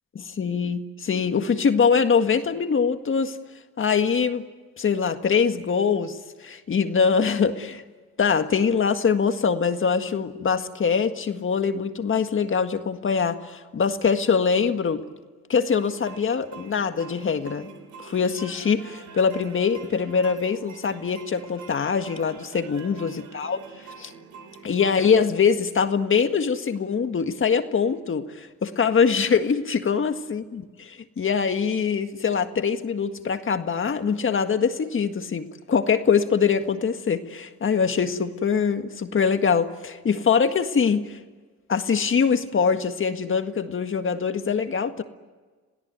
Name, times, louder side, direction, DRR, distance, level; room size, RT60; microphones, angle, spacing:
voice 1, 0.2-3.4 3.8-4.4 4.8-7.8 8.2-15.0 15.5-17.7 18.0-23.6 24.0-24.1 24.6-41.2 41.7-45.0, left 6 dB, 45° left, 8 dB, 1.8 m, -23 dB
sound 1, 15.7-25.1, right 5 dB, 75° right, 3.4 m, -45 dB
27.5 x 17.5 x 9.5 m, 1.4 s
cardioid pair, 90°, 30 cm